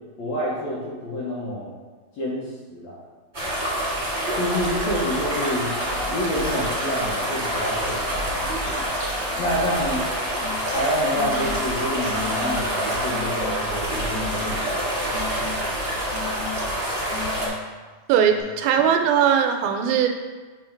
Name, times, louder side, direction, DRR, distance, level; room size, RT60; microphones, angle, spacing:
voice 1, 0.2-1.8 2.2-3.0 4.3-5.7 6.0-8.8 9.4-10.1 10.7-15.1, equal, 65° left, -7 dB, 1.8 m, -28 dB
sound 1, 3.3-17.5, equal, 30° right, 0.8 m, -26 dB
sound 2, 10.4-10.8 11.1-11.8 12.1-12.8 13.1-13.8 14.1-14.8 15.1-15.8 16.1-16.8 17.1-17.8 18.1-18.4, left 7 dB, 90° left, 3.1 m, -37 dB
voice 2, 18.1-20.1, right 8 dB, 85° right, 5 dB, 2.3 m, -19 dB
7.5 x 2.7 x 5.0 m, 1.4 s
omnidirectional pair, 4.2 m